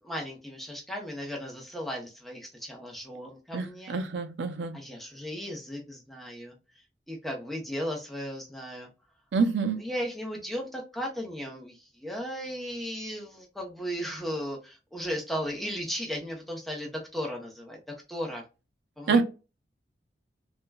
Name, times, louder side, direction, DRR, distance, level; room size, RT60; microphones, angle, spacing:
voice 1, 0.0-4.0 4.7-6.5 7.1-8.9 9.7-17.8 18.1-18.4 19.0-19.2, equal, ahead, 0.6 m, -36 dB
voice 2, 3.5-4.7 9.3-9.8 19.1-19.2, right 4 dB, 85° right, 0.5 m, -26 dB
3.3 x 2.1 x 2.2 m
head